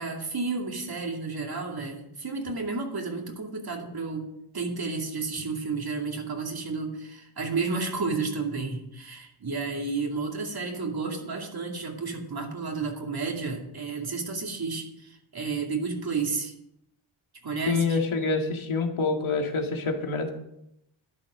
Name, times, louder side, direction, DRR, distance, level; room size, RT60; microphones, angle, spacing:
voice 1, 0.0-4.3 4.5-16.5 17.4-18.0, right 4 dB, 50° right, 1 dB, 2.5 m, -31 dB
voice 2, 17.7-20.3, left 4 dB, 80° left, 3 dB, 2.2 m, -26 dB
12.5 x 11.0 x 5.1 m, 0.80 s
wide cardioid pair, 120°, 48 cm